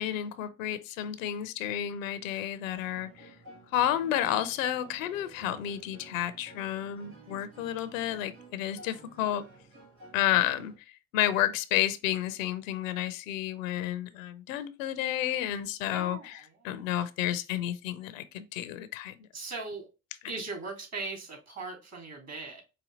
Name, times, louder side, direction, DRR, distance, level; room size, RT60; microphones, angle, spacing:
voice 1, 0.0-3.3 3.7-9.4 10.1-19.2, left 12 dB, 85° left, 0.5 m, -31 dB
sound 1, 2.8-10.8, right 2 dB, 85° right, 2.0 m, -52 dB
voice 2, 15.9-16.9 19.3-19.9 20.3-22.6, right 3 dB, 45° right, 2.8 m, -39 dB
5.1 x 2.7 x 3.8 m
hypercardioid pair, 50°, 38 cm